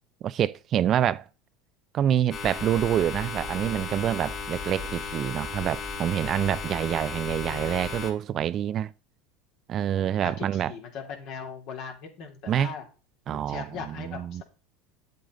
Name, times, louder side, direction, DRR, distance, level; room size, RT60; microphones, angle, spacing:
voice 1, 0.2-1.3 1.9-8.9 9.7-10.7 12.5-12.7 13.3-14.4, right 10 dB, 45° right, 0.5 m, -27 dB
sound 1, 2.3-8.1, left 5 dB, 35° left, 4.7 m, -35 dB
voice 2, 7.4-7.7 9.9-12.8 13.3-14.4, left 6 dB, 60° left, 3.2 m, -40 dB
9.1 x 8.0 x 3.9 m
hypercardioid pair, 90°, 0 cm